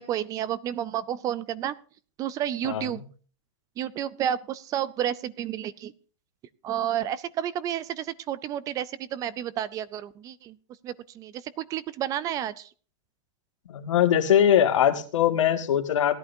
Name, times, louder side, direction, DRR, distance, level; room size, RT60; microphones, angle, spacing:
voice 1, 0.0-1.8 2.2-3.0 3.8-5.9 6.6-10.6 10.8-12.7, right 10 dB, 20° right, 19 dB, 0.4 m, -31 dB
voice 2, 13.7-16.2, left 10 dB, 90° left, 6 dB, 1.8 m, -21 dB
17.0 x 11.0 x 2.7 m, 0.41 s
supercardioid pair, 155°, 15 cm